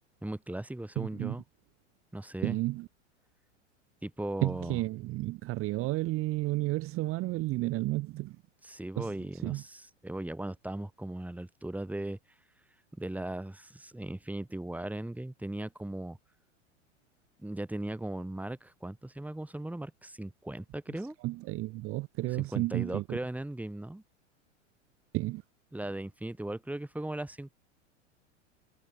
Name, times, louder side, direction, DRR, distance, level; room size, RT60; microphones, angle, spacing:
voice 1, 0.2-1.4 2.1-2.6 4.0-4.8 8.6-12.2 12.9-16.2 17.4-21.2 22.5-24.0 25.7-27.5, right 1 dB, 5° right, 3.6 m, -38 dB
voice 2, 1.0-1.4 2.4-2.9 4.4-8.4 9.0-9.1 9.4-9.6 21.2-23.2 25.1-25.4, right 19 dB, 35° right, 1.1 m, -32 dB
hypercardioid pair, 95°, 37 cm